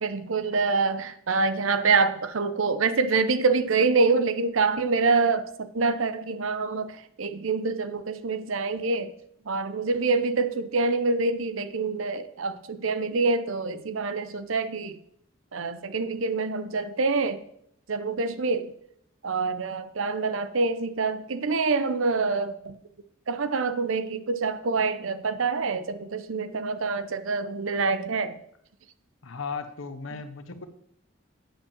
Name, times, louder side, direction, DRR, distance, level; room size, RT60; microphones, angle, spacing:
voice 1, 0.0-9.1 9.5-15.0 15.5-17.4 17.9-18.7 19.2-22.8 23.3-28.4, right 4 dB, 85° right, 0.7 m, -26 dB
voice 2, 29.2-30.7, left 5 dB, 80° left, 1.0 m, -36 dB
8.8 x 5.3 x 7.3 m
head